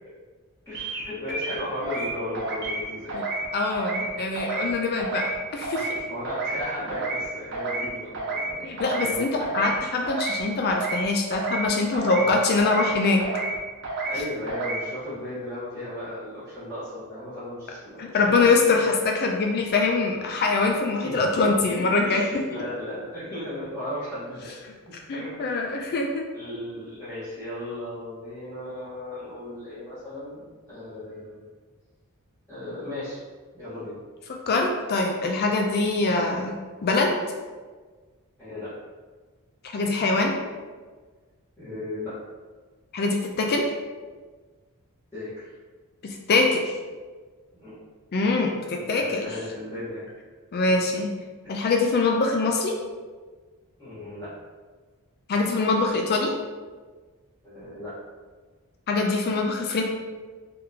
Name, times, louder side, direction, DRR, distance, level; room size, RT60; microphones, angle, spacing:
voice 1, 0.6-3.2 6.1-9.7 12.1-12.3 14.1-18.5 18.8-19.0 21.0-24.5 24.9-25.3 25.7-26.0 26.3-31.4 32.5-33.2 33.5-34.0 36.1-36.3 38.4-38.7 41.6-42.1 45.1-45.5 47.5-47.8 48.7-50.1 50.6-50.7 51.4-51.6 53.8-54.3 57.4-57.9, left 1 dB, 10° left, -16 dB, 1.3 m, -36 dB
sound 1, 0.7-1.0 1.3-2.1 2.3-2.8 3.1-3.4 3.7-4.1 4.3-4.7 5.0-5.3 5.6-6.0 6.2-6.6 6.9-7.2 7.5-7.9 8.1-8.5 8.8-9.1 9.4-9.8 10.0-10.4 10.7-11.0 11.3-11.7 11.9-12.3 12.6-12.9 13.2-13.6 13.8-14.2 14.5-14.8, right 3 dB, 50° right, 0.9 m, -30 dB
voice 2, 3.5-5.9 8.6-13.2 18.0-22.2 25.1-26.3 34.5-36.5 36.8-37.2 39.7-40.3 42.9-43.7 46.0-46.7 48.1-49.3 50.5-51.1 51.5-52.7 55.3-56.3 58.9-59.8, left 3 dB, 45° left, 2 dB, 0.4 m, -23 dB
3.9 x 3.6 x 2.7 m, 1.4 s
head